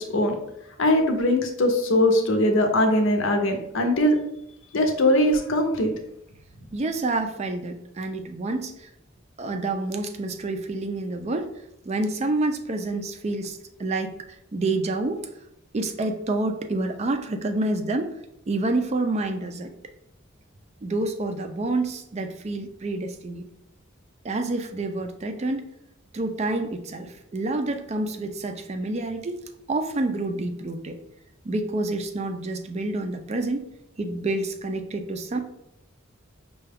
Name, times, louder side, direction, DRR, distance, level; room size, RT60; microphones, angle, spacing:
voice 1, 0.8-4.2 4.7-5.9, left 1 dB, 70° left, 5 dB, 0.7 m, -21 dB
voice 2, 6.7-8.9 9.4-11.5 11.9-14.1 14.5-15.2 15.7-18.1 18.5-19.7 20.8-23.4 24.2-25.7 26.1-29.4 29.7-31.0 31.5-33.6 34.0-35.4, right 2 dB, 35° right, 6 dB, 0.4 m, -28 dB
5.5 x 2.3 x 3.4 m, 0.79 s
head